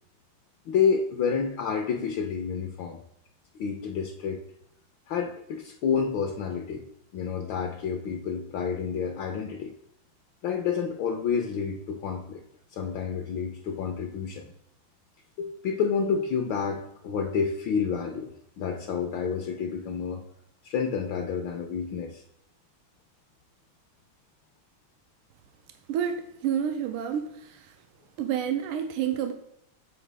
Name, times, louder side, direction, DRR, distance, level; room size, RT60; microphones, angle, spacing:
voice 1, 0.7-3.0 3.5-4.4 5.1-6.8 7.1-9.7 10.4-12.4 12.7-14.4 15.4-20.2 20.6-22.2, left 6 dB, 70° left, 4 dB, 1.3 m, -29 dB
voice 2, 25.9-27.7 28.2-29.3, right 9 dB, 85° right, 6 dB, 1.5 m, -29 dB
8.7 x 4.4 x 3.3 m, 0.78 s
omnidirectional pair, 2.3 m